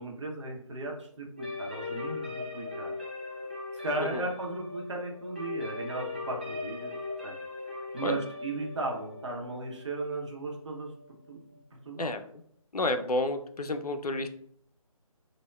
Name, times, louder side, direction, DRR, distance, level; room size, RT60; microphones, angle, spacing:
voice 1, 0.0-2.9 3.7-6.9 7.2-7.5 7.9-10.9 11.3-11.4 11.7-12.1, right 2 dB, 50° right, 0 dB, 0.7 m, -36 dB
sound 1, 1.4-11.0, left 3 dB, 15° right, 0.3 m, -39 dB
voice 2, 12.7-14.3, left 2 dB, 85° left, 8 dB, 0.4 m, -30 dB
3.2 x 2.1 x 2.2 m, 0.64 s
figure-of-eight pair, 150°, 19 cm